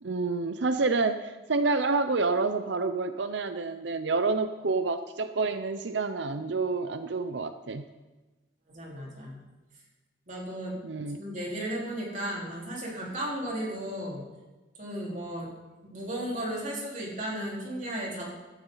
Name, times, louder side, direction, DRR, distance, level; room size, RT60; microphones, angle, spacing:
voice 1, 0.0-7.9 10.8-11.2, right 3 dB, 70° right, 10 dB, 0.6 m, -28 dB
voice 2, 8.7-9.4 10.3-10.8 11.2-14.2 14.8-15.5 15.8-18.3, right 1 dB, 45° right, -4 dB, 4.1 m, -35 dB
17.0 x 12.5 x 4.0 m, 1.2 s
head